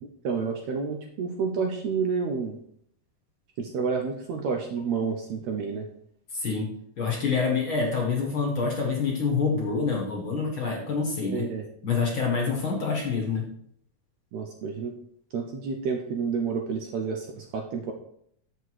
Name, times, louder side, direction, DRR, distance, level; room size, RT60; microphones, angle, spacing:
voice 1, 0.0-2.6 3.6-5.9 11.2-11.7 14.3-14.9 15.3-17.9, right 5 dB, 70° right, 3 dB, 1.7 m, -30 dB
voice 2, 6.3-6.7 7.0-11.5 11.8-13.5, left 5 dB, 50° left, -1 dB, 1.8 m, -26 dB
8.0 x 6.1 x 4.7 m, 0.69 s
omnidirectional pair, 3.8 m